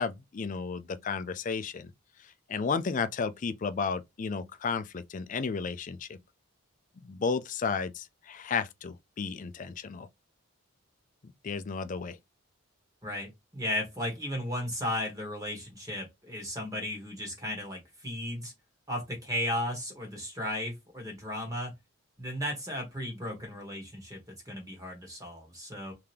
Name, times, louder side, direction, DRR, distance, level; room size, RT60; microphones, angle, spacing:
voice 1, 0.0-1.9 2.2-6.2 7.0-10.1 11.4-12.2, left 5 dB, 40° left, 0.4 m, -33 dB
voice 2, 13.0-18.5 18.9-21.7 22.2-25.9, left 1 dB, 15° right, 1.3 m, -35 dB
3.6 x 2.8 x 3.3 m
head